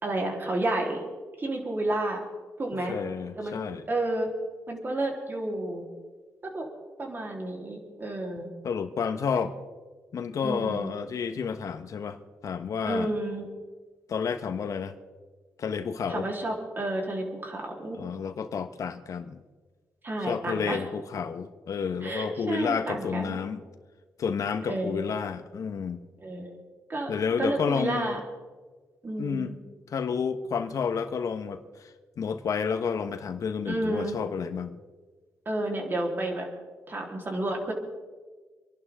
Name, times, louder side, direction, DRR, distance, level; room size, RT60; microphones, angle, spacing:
voice 1, 0.0-1.0 1.4-2.2 2.6-3.0 3.4-3.6 3.9-4.3 4.7-5.9 6.4-6.7 7.0-8.5 10.4-10.9 12.9-13.5 16.1-18.0 20.0-20.8 22.0-23.4 24.7-25.0 26.2-26.6 26.9-27.1 27.4-28.2 29.0-29.5 33.6-34.2 35.5-36.5 36.9-37.7, right 1 dB, 35° right, 0 dB, 3.9 m, -30 dB
voice 2, 2.9-3.8 8.6-9.5 10.1-13.1 14.1-14.9 15.6-16.3 18.0-19.4 20.3-23.6 24.2-26.0 27.1-28.2 29.2-29.5 29.9-31.9 32.2-34.8, left 6 dB, 65° left, 9 dB, 1.3 m, -30 dB
26.5 x 11.5 x 3.8 m, 1.4 s
cardioid pair, 70°, 6 cm